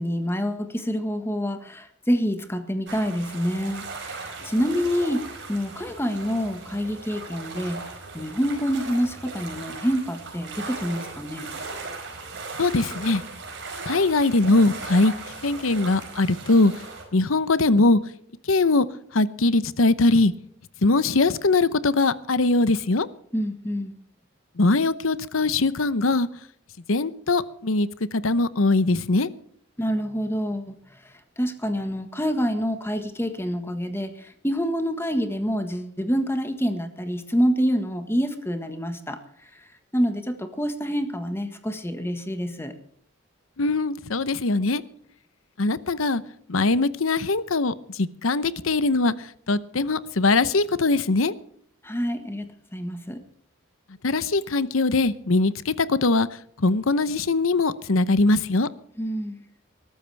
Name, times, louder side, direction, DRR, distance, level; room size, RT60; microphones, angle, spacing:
voice 1, 0.0-5.2 5.5-7.8 8.1-11.5 23.3-23.9 29.8-42.7 51.8-53.2 59.0-59.4, equal, 10° left, 7 dB, 1.5 m, -27 dB
sound 1, 2.9-17.0, right 3 dB, 60° right, 5.0 m, -38 dB
voice 2, 12.6-13.2 13.9-15.1 15.4-16.7 17.1-18.0 18.5-18.9 19.1-20.3 20.8-23.1 24.6-26.3 26.9-29.3 43.6-44.8 45.6-46.2 46.5-51.3 54.0-56.3 56.6-58.7, left 3 dB, 85° left, 15 dB, 0.9 m, -21 dB
20.5 x 13.0 x 3.4 m, 0.66 s
head